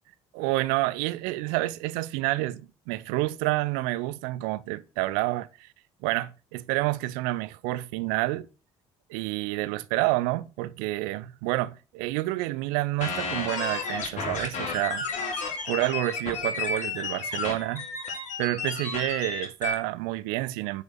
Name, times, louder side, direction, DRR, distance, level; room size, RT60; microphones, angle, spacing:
voice 1, 0.3-5.7 6.0-8.5 9.1-15.0 15.7-17.9 18.4-20.8, right 18 dB, 65° right, 0.7 m, -29 dB
sound 1, 13.0-19.7, left 4 dB, 50° left, 3.0 m, -32 dB
9.8 x 5.2 x 7.9 m
figure-of-eight pair, 50°, 16 cm